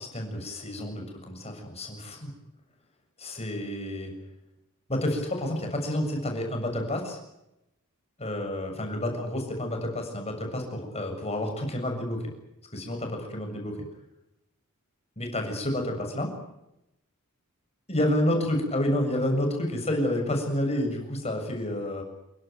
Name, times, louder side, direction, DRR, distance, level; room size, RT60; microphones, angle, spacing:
voice 1, 0.0-2.3 3.2-4.1 4.9-7.2 8.2-12.2 12.7-13.8 15.2-16.3 17.9-22.0, left 1 dB, 30° left, 3 dB, 7.2 m, -29 dB
28.0 x 17.5 x 9.5 m, 0.88 s
head